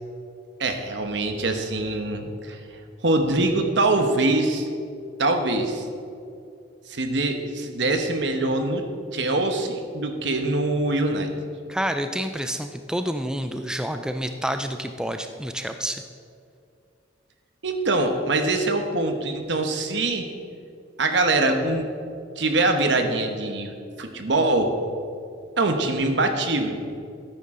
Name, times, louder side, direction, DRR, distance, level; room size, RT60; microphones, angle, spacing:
voice 1, 0.6-2.6 3.0-4.7 5.2-5.9 6.9-8.8 9.1-11.3 17.6-20.3 21.0-21.9 22.4-23.7 24.0-24.7 25.6-26.8, right 2 dB, 65° right, 5 dB, 1.1 m, -23 dB
voice 2, 11.7-16.0, equal, 5° right, 7 dB, 0.3 m, -28 dB
13.5 x 9.4 x 3.7 m, 2.4 s
head